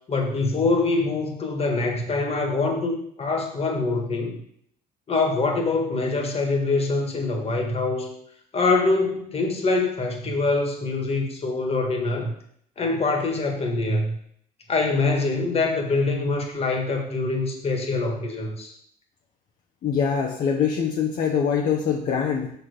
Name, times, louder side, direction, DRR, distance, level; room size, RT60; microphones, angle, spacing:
voice 1, 0.1-4.4 5.1-8.1 8.5-12.3 12.8-14.1 14.7-18.7, left 3 dB, 35° left, 2 dB, 1.6 m, -24 dB
voice 2, 19.8-22.5, left 7 dB, 55° left, 0 dB, 0.9 m, -23 dB
5.8 x 4.7 x 4.9 m, 0.67 s
cardioid pair, 110°, 17 cm